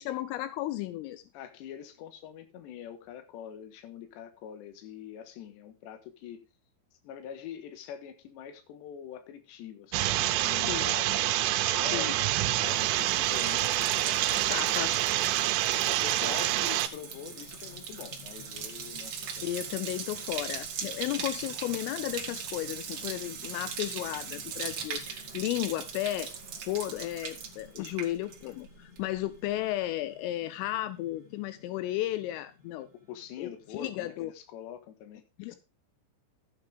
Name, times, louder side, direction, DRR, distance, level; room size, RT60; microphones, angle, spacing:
voice 1, 0.0-1.2 10.7-10.9 11.9-12.1 14.5-15.1 19.4-26.3 26.7-32.9 33.4-34.3 35.4-35.6, left 15 dB, 85° left, 3.3 m, -34 dB
voice 2, 1.3-6.4 7.0-11.2 11.5-12.3 12.6-14.9 15.9-20.0 27.8-27.9 33.1-35.2 35.5-35.6, left 9 dB, 65° left, 3.4 m, -44 dB
sound 1, 9.9-16.9, right 14 dB, 80° right, 3.1 m, -27 dB
Bathtub (filling or washing), 12.6-28.7 29.0-29.5, right 7 dB, 55° right, 1.8 m, -40 dB
sound 2, 14.8-34.1, left 5 dB, 20° left, 2.4 m, -55 dB
13.0 x 8.7 x 3.4 m
omnidirectional pair, 5.9 m